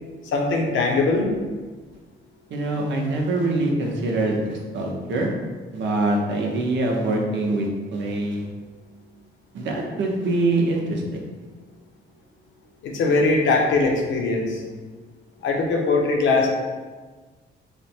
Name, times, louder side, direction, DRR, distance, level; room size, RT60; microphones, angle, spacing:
voice 1, 0.2-1.3 12.8-14.6 15.4-16.5, left 3 dB, 75° left, 1 dB, 0.7 m, -21 dB
voice 2, 2.5-5.3 5.7-8.4 9.5-11.0, right 2 dB, 70° right, 0 dB, 0.7 m, -24 dB
3.3 x 2.1 x 4.3 m, 1.4 s
cardioid pair, 90°, 20 cm